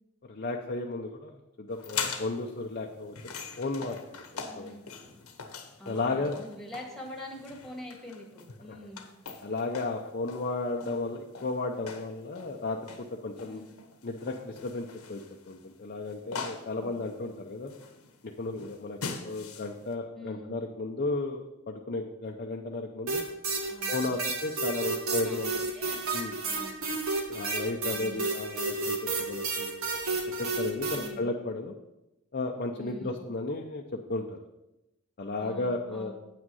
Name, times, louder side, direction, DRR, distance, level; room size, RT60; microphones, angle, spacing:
voice 1, 0.3-3.2 3.6-4.7 5.9-6.3 8.7-8.8 9.4-12.8 13.2-13.6 14.0-15.2 15.5-17.7 18.2-23.2 23.9-25.5 26.1-26.3 27.3-29.8 30.4-31.8 32.3-33.8 34.1-34.4 35.2-36.1, left 2 dB, 40° left, 2 dB, 0.6 m, -34 dB
sound 1, 1.7-19.9, left 5 dB, 85° left, 1.1 m, -42 dB
voice 2, 4.4-4.9 5.8-9.1 13.4-13.8 16.7-17.0 20.1-20.5 23.7-24.2 25.1-26.1 26.4-26.7 27.8-28.3 30.9-31.3 32.8-33.2 35.4-36.1, left 1 dB, ahead, 0 dB, 1.7 m, -45 dB
sound 2, 23.1-31.1, right 3 dB, 70° right, 1.7 m, -31 dB
8.6 x 6.1 x 5.5 m, 0.95 s
head